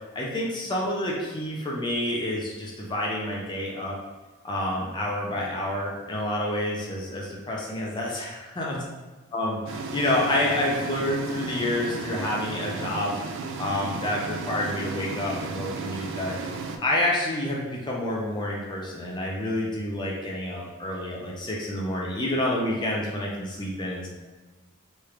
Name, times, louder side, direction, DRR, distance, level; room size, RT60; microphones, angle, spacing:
voice 1, 0.2-3.9 4.4-8.8 9.3-13.2 13.6-16.3 16.8-24.1, left 1 dB, 20° left, -3 dB, 0.4 m, -28 dB
sound 1, 9.7-16.8, right 4 dB, 60° right, 0.3 m, -34 dB
3.1 x 2.4 x 3.2 m, 1.2 s
head